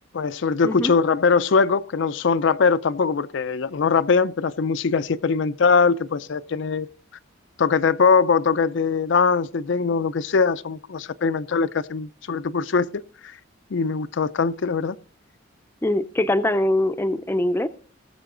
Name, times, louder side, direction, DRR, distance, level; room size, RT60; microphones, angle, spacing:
voice 1, 0.1-6.9 7.6-13.0 13.7-15.0, left 5 dB, 65° left, 0.5 m, -21 dB
voice 2, 15.8-17.7, left 1 dB, 10° left, 0.5 m, -22 dB
19.5 x 6.8 x 3.8 m
head